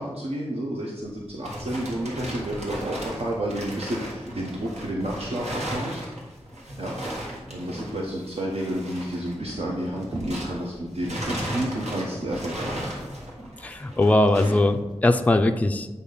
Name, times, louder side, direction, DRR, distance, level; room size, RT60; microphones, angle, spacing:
voice 1, 0.0-6.0 6.8-7.0 7.5-12.9, right 1 dB, 65° right, -2 dB, 0.8 m, -31 dB
sound 1, 1.0-10.7 11.0-14.7, right 1 dB, 85° right, 1.5 m, -36 dB
sound 2, 7.7-8.5 9.0-15.0, right 1 dB, 40° right, 1.0 m, -43 dB
voice 2, 13.6-15.9, left 2 dB, 15° left, 6 dB, 0.3 m, -20 dB
8.2 x 2.7 x 5.3 m, 1.1 s
wide cardioid pair, 80°, 11 cm